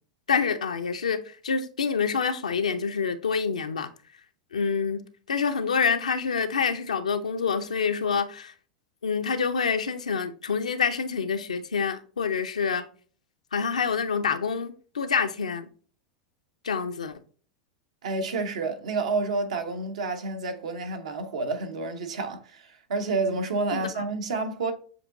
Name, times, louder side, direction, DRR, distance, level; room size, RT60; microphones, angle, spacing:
voice 1, 0.3-3.9 4.5-8.5 9.0-12.8 13.5-15.7 16.6-17.1 23.7-24.0, left 6 dB, 90° left, 0.5 m, -27 dB
voice 2, 18.0-24.7, right 3 dB, 75° right, 0.8 m, -29 dB
7.0 x 2.8 x 2.5 m
hypercardioid pair, 95°, 4 cm